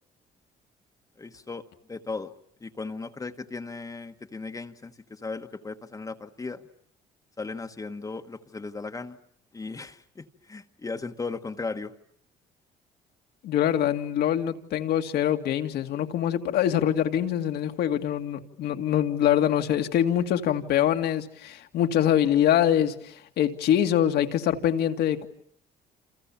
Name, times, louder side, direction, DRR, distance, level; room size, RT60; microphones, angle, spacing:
voice 1, 1.2-1.6 1.9-2.3 2.6-6.6 7.4-9.2 9.5-11.9, left 3 dB, 20° left, 1.3 m, -36 dB
voice 2, 13.4-25.3, left 10 dB, 70° left, 2.1 m, -24 dB
28.5 x 28.0 x 7.2 m
cardioid pair, 110°, 17 cm